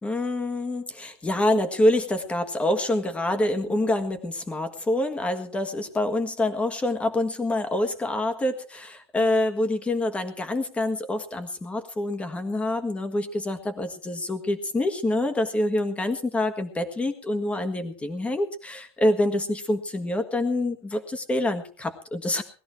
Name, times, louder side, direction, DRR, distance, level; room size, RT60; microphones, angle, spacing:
voice 1, 0.0-22.4, left 1 dB, 10° left, 9 dB, 1.6 m, -26 dB
19.5 x 13.5 x 4.6 m, 0.40 s
supercardioid pair, 165°, 14 cm